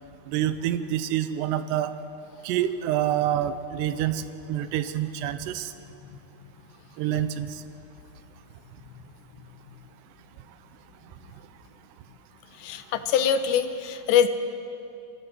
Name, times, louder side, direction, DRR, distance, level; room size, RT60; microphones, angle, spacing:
voice 1, 0.3-2.0 2.4-5.7 7.0-7.5, right 11 dB, 80° right, 11 dB, 2.8 m, -27 dB
voice 2, 12.6-14.3, left 8 dB, 80° left, 9 dB, 3.1 m, -23 dB
27.5 x 23.0 x 4.5 m, 2.7 s
omnidirectional pair, 5.1 m